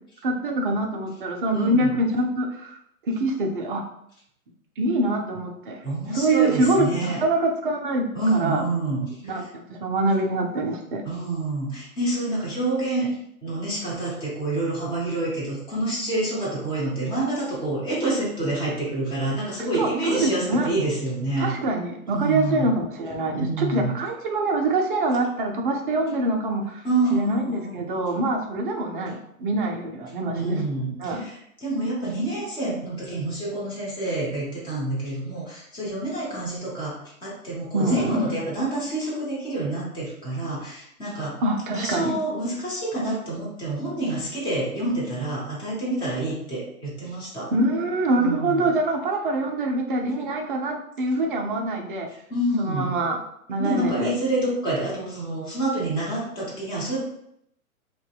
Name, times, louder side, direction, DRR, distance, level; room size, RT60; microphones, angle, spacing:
voice 1, 0.2-2.8 3.1-3.8 4.8-5.8 6.1-8.6 9.2-11.0 19.6-20.7 21.4-26.8 27.1-31.2 37.7-38.4 41.4-42.2 47.5-52.1 52.6-53.2 53.5-54.1, right 2 dB, 40° right, 2 dB, 0.4 m, -25 dB
voice 2, 1.5-1.9 5.8-7.2 8.1-9.5 11.0-13.1 13.4-21.5 22.1-22.7 23.3-24.0 26.8-27.9 30.3-41.4 41.7-47.5 48.2-48.7 52.3-52.9 53.6-57.0, right 2 dB, 10° left, -6 dB, 0.7 m, -27 dB
2.6 x 2.1 x 2.3 m, 0.73 s
figure-of-eight pair, 120°, 44 cm